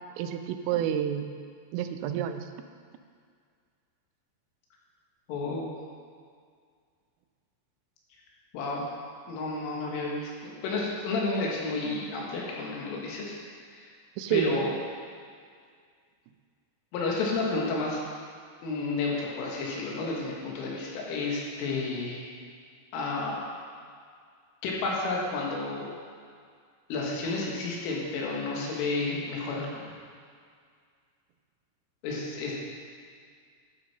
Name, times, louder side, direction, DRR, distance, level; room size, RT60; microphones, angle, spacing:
voice 1, 0.2-1.3 1.7-2.5 14.2-14.6, right 9 dB, 90° right, 8 dB, 3.2 m, -29 dB
voice 2, 5.3-5.8 8.5-8.9 9.3-13.4 13.7-13.9 14.3-14.7 16.9-18.0 18.6-22.3 22.9-23.4 24.6-25.9 26.9-29.8 32.0-32.5, left 3 dB, 90° left, -3 dB, 4.3 m, -31 dB
12.0 x 9.3 x 4.4 m, 2.1 s
omnidirectional pair, 5.6 m